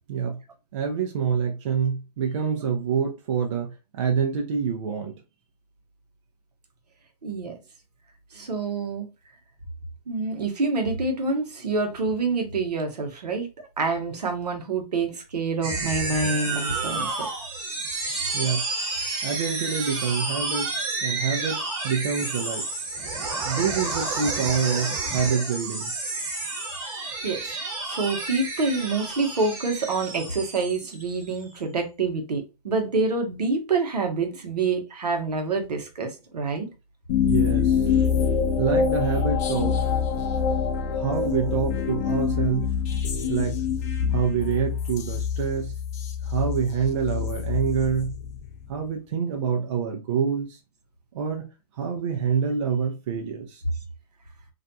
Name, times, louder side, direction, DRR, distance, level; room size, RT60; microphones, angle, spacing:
voice 1, 0.1-0.4 0.7-5.1 18.3-18.6 19.2-20.7 21.0-22.6 23.4-25.9 37.2-37.9 38.6-39.8 40.9-42.7 43.3-43.6 44.1-45.7 46.2-48.2 48.7-50.6 51.1-51.5 51.8-53.6, right 6 dB, 45° right, 0.5 m, -26 dB
voice 2, 7.2-7.5 8.3-9.1 10.1-13.5 13.8-17.3 27.2-27.6 27.8-36.7, right 3 dB, 75° right, 0.9 m, -27 dB
sound 1, 15.6-31.4, right 3 dB, 30° right, 1.2 m, -30 dB
sound 2, 37.1-48.7, left 7 dB, 25° left, 0.3 m, -25 dB
2.5 x 2.2 x 2.6 m
hypercardioid pair, 130°, 21 cm